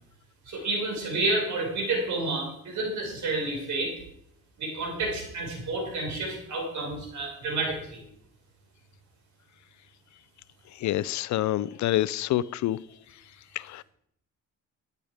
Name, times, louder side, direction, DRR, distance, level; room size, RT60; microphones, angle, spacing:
voice 1, 0.5-3.9 4.6-8.0, right 2 dB, 70° right, 5.5 m, -30 dB
voice 2, 10.8-12.8 13.6-13.8, left 14 dB, 70° left, 0.5 m, -27 dB
12.0 x 9.7 x 5.1 m
cardioid pair, 90°, 30 cm